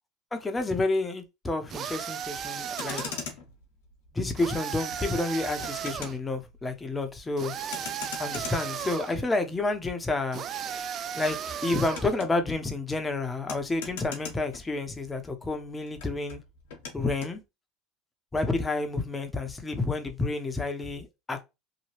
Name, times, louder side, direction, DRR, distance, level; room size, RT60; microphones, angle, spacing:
voice 1, 0.3-3.0 4.1-7.5 8.2-10.4 11.2-11.4 11.6-16.4 16.9-17.4 18.3-21.4, left 2 dB, 15° left, 0.7 m, -29 dB
sound 1, 1.7-3.3 4.4-6.2 7.4-9.2 10.3-12.1, right 8 dB, 45° right, 0.3 m, -35 dB
Motor vehicle (road), 2.6-15.2 15.5-17.4, left 6 dB, 80° left, 0.9 m, -43 dB
2.9 x 2.3 x 2.9 m
hypercardioid pair, 90°, 0 cm